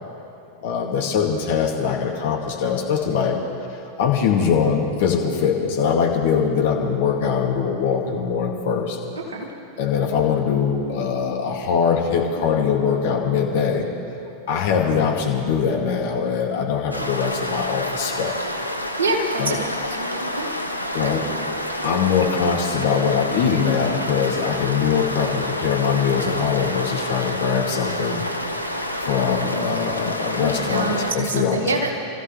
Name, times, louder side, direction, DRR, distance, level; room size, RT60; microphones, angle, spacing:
voice 1, 0.6-3.4 4.0-9.0 9.8-13.9 14.5-18.3 19.4-19.6 20.9-21.3 21.8-28.2 29.0-31.7, left 6 dB, 55° left, 0 dB, 2.3 m, -22 dB
sound 1, 16.9-31.1, left 1 dB, 90° right, 0.8 m, -28 dB
voice 2, 19.0-19.6 20.0-20.5 30.4-32.0, right 2 dB, 70° right, 0 dB, 2.0 m, -26 dB
27.5 x 14.5 x 3.3 m, 2.8 s
figure-of-eight pair, 90°, 0 cm